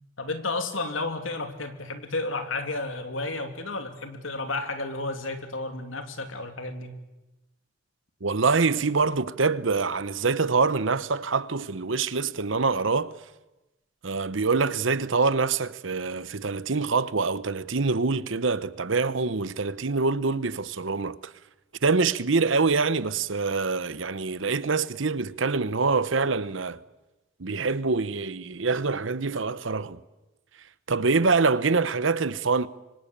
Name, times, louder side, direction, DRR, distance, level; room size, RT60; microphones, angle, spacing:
voice 1, 0.2-6.9, left 2 dB, 85° left, 3.0 m, -32 dB
voice 2, 8.2-13.1 14.0-21.3 21.8-26.8 27.4-30.0 30.9-32.7, right 4 dB, 80° right, 0.9 m, -25 dB
25.5 x 25.0 x 8.7 m
head